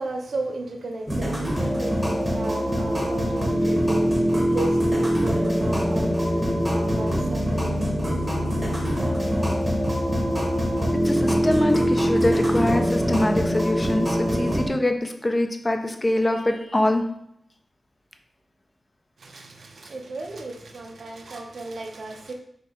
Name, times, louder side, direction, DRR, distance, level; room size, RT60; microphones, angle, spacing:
voice 1, 0.0-10.4 19.2-22.3, right 2 dB, 70° right, 3 dB, 0.6 m, -35 dB
sound 1, 1.1-14.7, equal, 5° right, 0.9 m, -23 dB
sound 2, 5.3-14.1, left 2 dB, 50° left, 0.9 m, -34 dB
voice 2, 11.1-17.0, left 1 dB, 20° left, 6 dB, 0.4 m, -24 dB
4.3 x 2.8 x 4.2 m, 0.72 s
wide cardioid pair, 145°, 0 cm